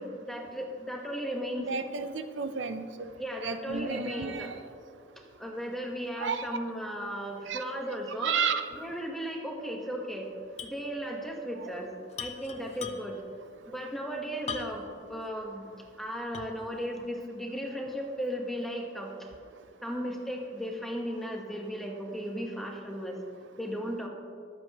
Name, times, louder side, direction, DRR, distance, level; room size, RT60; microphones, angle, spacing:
voice 1, 0.0-1.7 3.2-4.5 5.4-8.4 8.7-10.3 10.6-11.9 12.2-13.2 13.6-15.7 16.0-19.3 19.8-23.2 23.6-24.1, equal, ahead, 0 dB, 1.2 m, -36 dB
voice 2, 1.6-2.9 3.4-4.5 6.2-6.5 7.5-7.6 8.2-8.7 11.6-11.7, right 5 dB, 75° right, 9 dB, 0.6 m, -32 dB
sound 1, 10.6-10.8 11.1-11.2 12.1-13.3 14.5-15.0 15.5-15.6 16.3-16.7, left 6 dB, 35° left, 0.5 m, -40 dB
21.0 x 7.9 x 3.0 m, 2.3 s
head